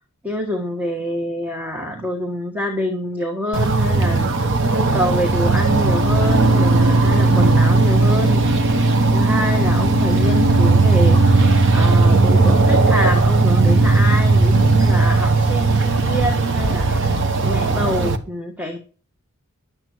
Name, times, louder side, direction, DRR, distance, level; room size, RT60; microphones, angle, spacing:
voice 1, 0.2-8.4 9.1-11.5 11.7-18.8, equal, 10° right, 2 dB, 1.6 m, -26 dB
sound 1, 3.5-18.2, right 3 dB, 60° right, 1.3 m, -16 dB
Guitar, 6.3-11.8, right 2 dB, 90° right, 1.9 m, -30 dB
11.5 x 9.1 x 4.7 m, 0.38 s
head